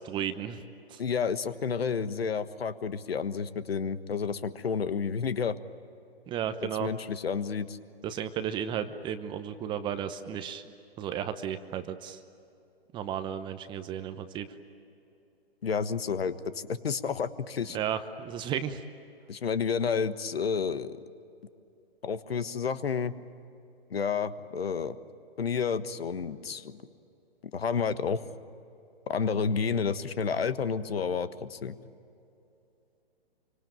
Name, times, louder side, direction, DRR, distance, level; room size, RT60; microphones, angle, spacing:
voice 1, 0.1-0.6 0.9-1.0 6.3-6.9 8.0-10.6 11.0-12.2 12.9-14.5 17.7-18.8, right 9 dB, 15° right, 10 dB, 0.9 m, -33 dB
voice 2, 1.0-5.6 6.8-7.8 15.6-17.8 19.3-21.0 22.0-23.1 23.9-25.0 25.4-26.8 27.5-28.2 29.1-31.8, left 6 dB, 70° left, 13 dB, 1.5 m, -30 dB
26.0 x 25.0 x 9.0 m, 2.7 s
figure-of-eight pair, 135°, 32 cm